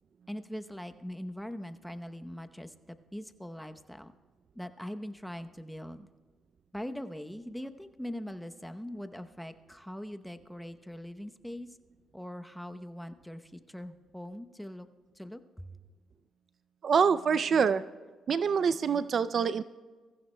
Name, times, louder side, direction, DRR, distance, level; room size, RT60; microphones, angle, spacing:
voice 1, 0.3-4.1 4.5-6.1 6.7-11.8 12.1-14.9 15.1-15.7, equal, ahead, 8 dB, 0.8 m, -42 dB
voice 2, 16.8-17.8 18.3-19.6, right 6 dB, 50° right, 14 dB, 0.4 m, -25 dB
23.5 x 15.0 x 2.2 m, 1.4 s
cardioid pair, 90°, 0 cm